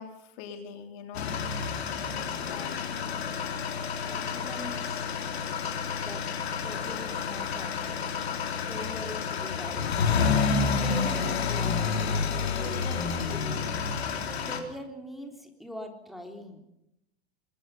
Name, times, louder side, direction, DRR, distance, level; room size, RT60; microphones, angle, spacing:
voice 1, 0.0-1.4 2.1-2.8, left 7 dB, 50° left, 5 dB, 3.5 m, -43 dB
sound 1, 1.1-14.6, left 5 dB, 70° left, 3.8 m, -29 dB
voice 2, 4.1-5.0 6.0-6.2 6.6-8.1 8.7-10.2 10.8-12.1 12.5-13.7 14.5-16.6, equal, ahead, 2 dB, 3.4 m, -42 dB
25.0 x 21.5 x 5.6 m, 0.81 s
hypercardioid pair, 100°, 33 cm